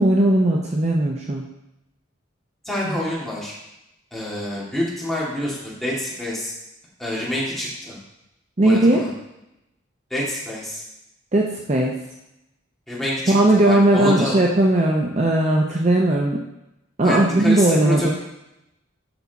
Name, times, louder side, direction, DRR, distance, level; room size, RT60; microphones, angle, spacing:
voice 1, 0.0-1.4 2.9-3.0 8.6-9.1 11.3-12.0 13.3-16.4 17.0-18.1, right 1 dB, 35° right, 0 dB, 0.6 m, -18 dB
voice 2, 2.6-3.5 4.1-6.5 7.0-7.9 8.6-9.1 10.1-10.8 12.9-14.4 17.0-18.1, left 1 dB, ahead, -8 dB, 2.2 m, -27 dB
7.0 x 5.6 x 4.0 m, 0.90 s
head